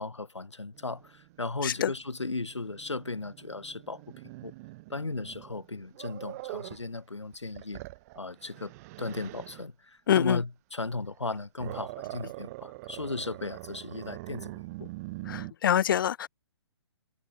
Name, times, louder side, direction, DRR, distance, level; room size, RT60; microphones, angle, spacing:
voice 1, 0.0-4.0 4.4-4.5 4.9-7.8 8.2-8.7 9.0-14.9, left 3 dB, 85° left, 2.5 m, -36 dB
Growling, 0.7-6.9 7.3-9.7 11.1-15.5, right 21 dB, 35° right, 6.5 m, -44 dB
voice 2, 10.1-10.4 15.3-16.3, left 10 dB, 50° left, 0.4 m, -25 dB
figure-of-eight pair, 130°, 15 cm